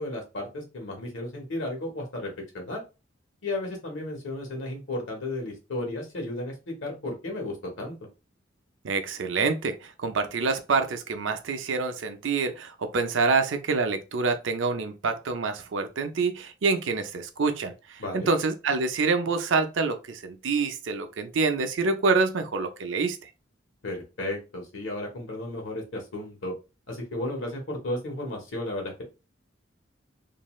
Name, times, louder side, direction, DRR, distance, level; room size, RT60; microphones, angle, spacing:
voice 1, 0.0-2.8 3.4-8.0 18.0-18.3 23.8-26.5 26.9-29.0, left 1 dB, 80° left, 1.0 m, -34 dB
voice 2, 8.8-23.2, right 4 dB, 75° right, 0.5 m, -26 dB
2.6 x 2.3 x 3.0 m
head